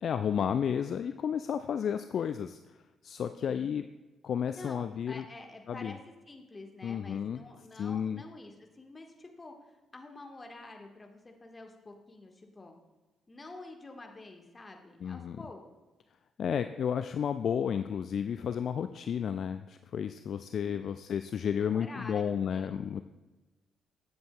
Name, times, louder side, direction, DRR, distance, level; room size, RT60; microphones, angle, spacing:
voice 1, 0.0-2.6 3.0-3.8 4.2-5.2 5.7-5.9 6.8-7.4 7.8-8.2 15.0-15.4 16.4-23.0, left 8 dB, 50° left, 10 dB, 0.3 m, -32 dB
voice 2, 3.4-3.7 4.5-6.0 6.3-12.7 13.3-15.6 20.5-20.9 21.5-23.0, left 2 dB, 25° left, 3 dB, 1.5 m, -48 dB
15.5 x 7.8 x 2.3 m, 1.1 s
figure-of-eight pair, 40°, 0 cm